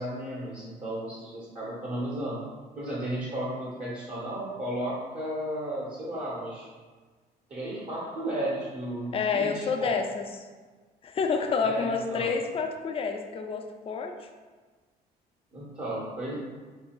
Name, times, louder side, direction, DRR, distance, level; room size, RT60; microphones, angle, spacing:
voice 1, 0.0-2.4 2.8-6.7 7.5-9.9 11.6-12.3 15.5-16.3, right 1 dB, 40° right, -8 dB, 0.9 m, -34 dB
voice 2, 9.1-10.3 11.0-14.3, left 5 dB, 35° left, 5 dB, 0.4 m, -29 dB
3.8 x 3.6 x 2.3 m, 1.4 s
cardioid pair, 110°, 17 cm